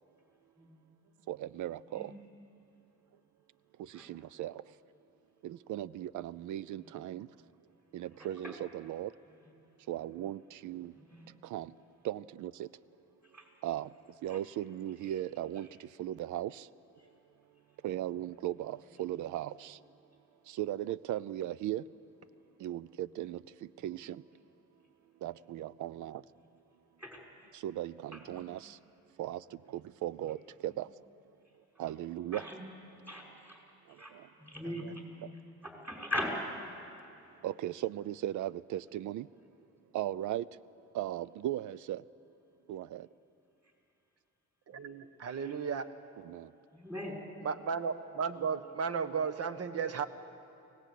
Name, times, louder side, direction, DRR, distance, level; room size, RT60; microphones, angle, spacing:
voice 1, 1.3-2.2 3.8-4.8 5.4-7.3 7.9-9.1 9.9-10.9 11.4-11.8 12.0-12.7 13.6-13.9 14.2-16.7 17.8-19.8 20.5-21.9 22.6-24.2 25.2-26.2 27.5-28.8 29.2-31.0 31.8-32.5 33.9-34.3 35.2-35.3 37.4-39.3 39.9-40.5 40.9-42.0 42.7-43.1 46.2-46.5, right 13 dB, 75° right, 0.6 m, -38 dB
voice 2, 10.9-11.3 13.3-13.4 14.3-14.4 27.0-27.2 28.1-28.4 32.3-32.6 33.1-33.6 34.0-34.1 34.4-35.0 35.6-36.3 45.3-45.5 46.7-47.2, left 1 dB, 5° right, 5.7 m, -40 dB
voice 3, 34.6-34.9 44.7-45.9 47.4-50.0, right 6 dB, 50° right, 1.2 m, -35 dB
24.0 x 18.0 x 8.4 m
cardioid pair, 90°, 30 cm